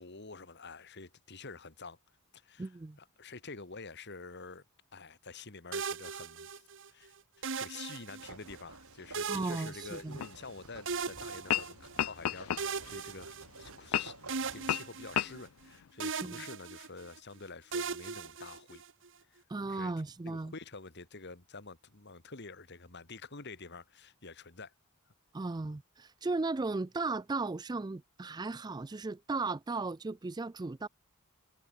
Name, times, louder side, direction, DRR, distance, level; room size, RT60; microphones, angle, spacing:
voice 1, 0.0-2.0 2.3-2.7 3.0-4.6 4.9-6.6 6.9-7.1 7.6-14.2 14.5-18.8 19.3-19.4 19.7-19.9 20.3-24.7, left 4 dB, 50° left, 2.0 m, -48 dB
voice 2, 2.6-3.0 9.3-10.2 16.2-16.4 19.5-20.5 25.3-30.9, right 3 dB, 20° right, 0.4 m, -36 dB
sound 1, 5.7-6.9 7.4-8.6 9.1-10.5 10.9-12.0 12.6-13.9 14.3-15.7 16.0-17.2 17.7-19.1, right 5 dB, 60° right, 1.4 m, -39 dB
sound 2, 8.2-14.8, right 3 dB, 80° right, 5.2 m, -52 dB
sound 3, 10.2-10.3 11.3-11.7 12.0-13.0 13.9-14.3 14.7-14.8 15.1-15.3, left 11 dB, 85° left, 0.4 m, -31 dB
head